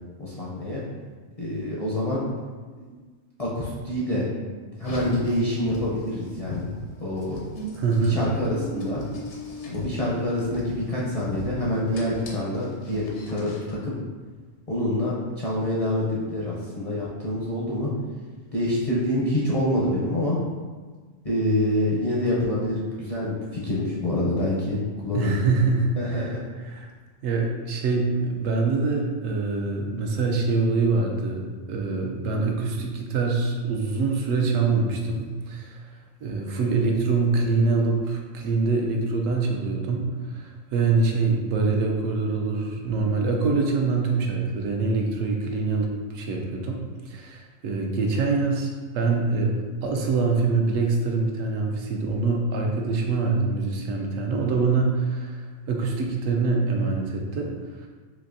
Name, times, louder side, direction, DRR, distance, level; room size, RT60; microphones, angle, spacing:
voice 1, 0.2-0.8 1.4-2.2 2.8-2.9 3.4-4.3 4.8-6.6 7.0-7.4 8.0-9.0 9.7-13.9 14.7-17.9 18.5-20.4 21.2-24.8 25.0-25.4 26.0-26.4, left 1 dB, 40° left, -7 dB, 0.5 m, -26 dB
Car, 4.8-13.7, left 1 dB, 70° left, 1.0 m, -37 dB
voice 2, 7.8-8.2 25.1-26.9 27.2-35.9 36.2-49.6 49.8-57.5 57.8-57.9, right 4 dB, 85° right, 1 dB, 1.0 m, -25 dB
4.1 x 2.6 x 2.5 m, 1.4 s
omnidirectional pair, 1.3 m